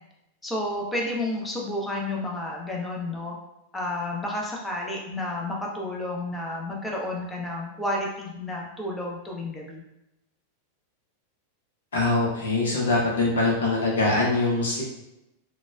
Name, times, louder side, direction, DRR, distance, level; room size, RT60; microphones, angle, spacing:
voice 1, 0.4-3.3 3.7-9.8, left 1 dB, 10° left, -2 dB, 0.6 m, -31 dB
voice 2, 11.9-14.8, left 2 dB, 65° left, -3 dB, 0.7 m, -23 dB
4.0 x 2.2 x 2.2 m, 0.89 s
figure-of-eight pair, 90°, 0 cm